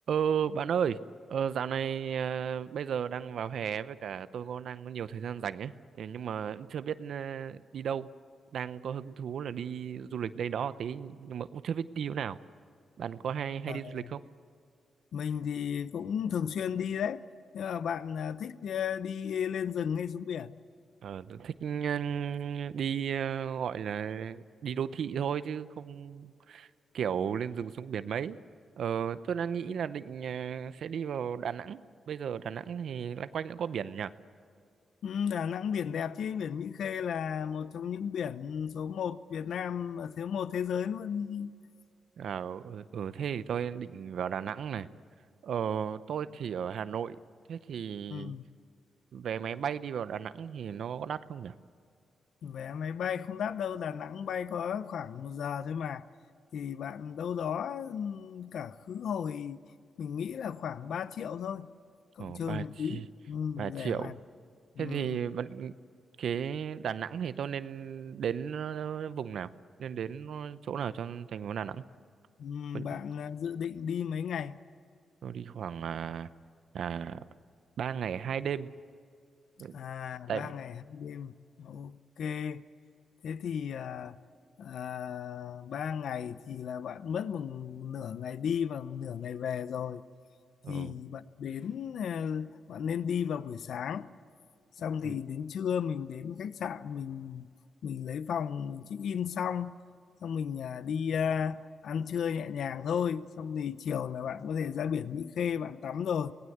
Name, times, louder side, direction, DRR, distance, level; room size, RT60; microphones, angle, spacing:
voice 1, 0.1-1.0 1.3-8.1 8.5-12.4 13.0-14.2 21.0-26.7 26.9-28.4 28.8-31.8 32.1-34.1 42.2-44.9 45.4-47.2 47.5-48.3 49.1-51.5 62.2-63.0 63.5-64.1 64.8-65.7 66.2-69.5 69.8-71.8 72.7-72.9 75.2-76.3 76.7-77.2 77.8-78.7 79.6-79.7 80.3-80.5 90.6-90.9 95.0-95.2, right 8 dB, 70° right, 0.7 m, -34 dB
voice 2, 13.7-14.1 15.1-17.2 17.5-20.6 35.0-41.5 48.1-48.4 52.4-56.0 56.5-59.6 60.0-61.7 62.2-64.1 64.8-65.2 72.4-74.6 79.7-82.6 83.2-84.2 84.6-90.0 90.7-94.1 94.8-97.5 97.8-99.8 100.2-106.3, left 7 dB, 75° left, 0.7 m, -34 dB
25.5 x 19.0 x 8.0 m
cardioid pair, 120°, 0 cm